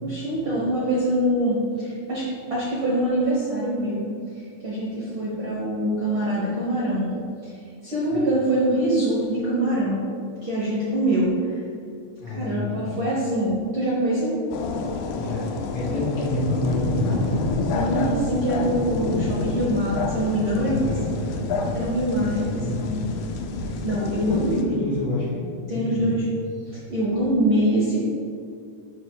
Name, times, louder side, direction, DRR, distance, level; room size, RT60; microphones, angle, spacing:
voice 1, 0.0-2.2 2.5-4.1 4.3-7.1 7.4-7.5 7.8-10.0 10.4-11.6 12.3-14.4 17.7-21.0 21.7-22.4 22.7-22.9 23.6-24.6 25.7-26.2 26.7-28.1, right 1 dB, 65° right, -7 dB, 1.3 m, -24 dB
voice 2, 12.2-13.0 15.2-17.4 19.1-19.3 20.6-21.7 22.2-23.3 24.2-25.5 25.7-26.2, left 1 dB, 65° left, -4 dB, 1.9 m, -29 dB
sound 1, 14.5-24.6, left 4 dB, 80° left, 1.7 m, -28 dB
11.0 x 4.3 x 2.3 m, 2.3 s
omnidirectional pair, 3.9 m